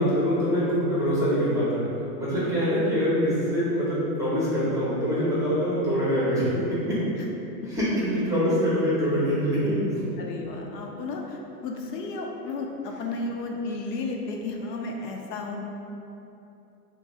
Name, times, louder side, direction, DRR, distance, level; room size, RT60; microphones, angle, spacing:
voice 1, 0.0-1.9 2.2-7.0 7.6-9.9, equal, 5° right, -9 dB, 0.5 m, -24 dB
voice 2, 10.2-15.6, left 3 dB, 85° left, 1 dB, 0.6 m, -33 dB
2.6 x 2.2 x 3.9 m, 2.9 s
hypercardioid pair, 115°, 48 cm